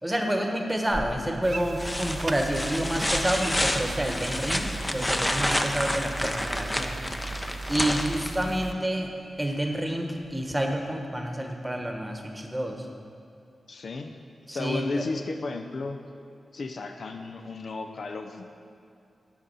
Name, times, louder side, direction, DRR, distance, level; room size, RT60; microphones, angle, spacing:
voice 1, 0.0-7.0 7.7-12.9 14.5-15.1, right 1 dB, 15° right, 3 dB, 1.0 m, -29 dB
sound 1, 0.9-1.3 1.8-8.7 10.5-10.6, left 1 dB, 20° left, 0.6 m, -29 dB
sound 2, 1.4-8.7, right 3 dB, 50° right, 0.4 m, -37 dB
voice 2, 13.7-14.2 14.5-16.0 16.5-18.5, left 3 dB, 70° left, 5 dB, 0.4 m, -34 dB
10.0 x 4.0 x 5.4 m, 2.5 s
cardioid pair, 45°, 0 cm